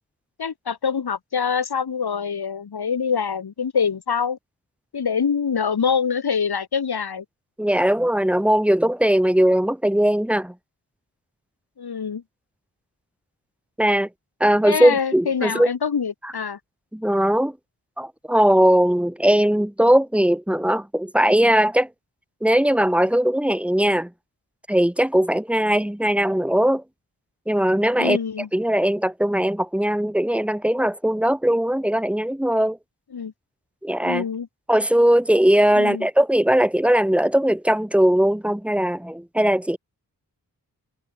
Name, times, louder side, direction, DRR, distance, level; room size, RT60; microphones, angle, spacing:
voice 1, 0.4-4.4 4.9-7.3 11.8-12.2 14.6-16.6 28.0-28.5 33.1-33.3 34.0-34.5 35.8-36.1, left 6 dB, 80° left, 5.1 m, -25 dB
voice 2, 7.6-10.5 13.8-14.1 14.4-15.7 16.2-16.3 16.9-17.6 18.0-21.9 22.4-24.1 24.7-26.8 27.5-28.2 28.5-32.8 33.8-34.2 34.7-39.8, right 1 dB, 5° right, 2.0 m, -19 dB
wide cardioid pair, 85°, 38 cm